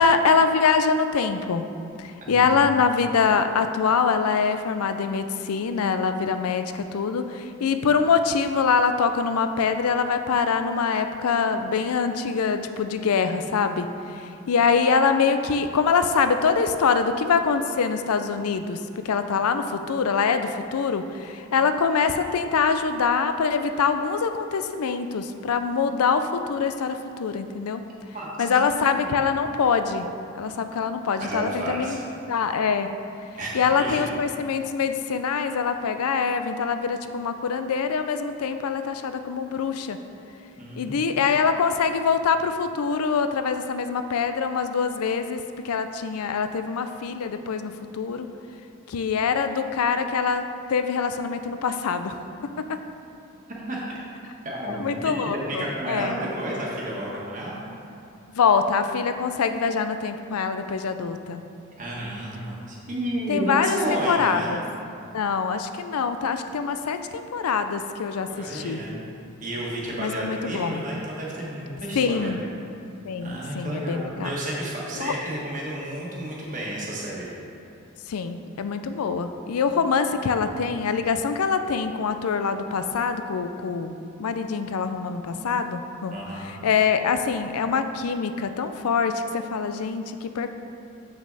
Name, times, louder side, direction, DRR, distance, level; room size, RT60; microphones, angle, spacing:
voice 1, 0.0-1.7 2.0-13.9 14.1-27.8 28.4-30.1 30.3-32.0 32.3-32.9 33.5-40.0 40.8-48.3 48.9-50.4 50.7-52.2 52.7-52.8 54.7-56.2 58.4-61.4 63.3-64.6 65.1-68.8 70.0-70.9 71.9-72.4 73.0-74.3 75.0-75.1 78.1-90.5, left 5 dB, 90° left, 9 dB, 0.4 m, -24 dB
voice 2, 2.2-2.6 21.5-21.6 28.1-28.5 29.0-29.1 31.2-32.0 33.4-34.0 40.6-41.2 53.7-54.0 54.4-57.6 61.8-64.5 68.3-69.0 69.4-72.3 73.2-77.3 86.1-86.5, right 1 dB, 35° right, -5 dB, 1.4 m, -31 dB
7.5 x 6.0 x 4.0 m, 2.6 s
head